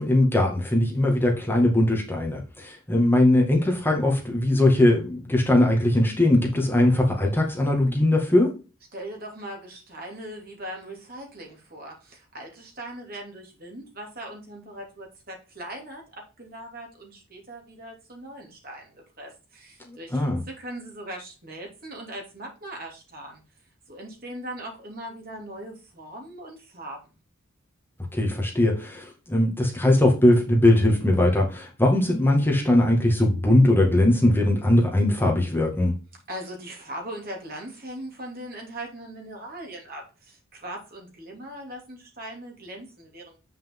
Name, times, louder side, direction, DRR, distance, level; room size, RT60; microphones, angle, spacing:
voice 1, 0.0-8.5 19.9-20.4 28.1-35.9, left 1 dB, 10° left, 0 dB, 1.9 m, -20 dB
voice 2, 8.9-23.4 23.9-27.0 36.3-43.4, right 1 dB, 45° right, 1 dB, 2.8 m, -40 dB
8.6 x 5.9 x 3.7 m, 0.32 s
head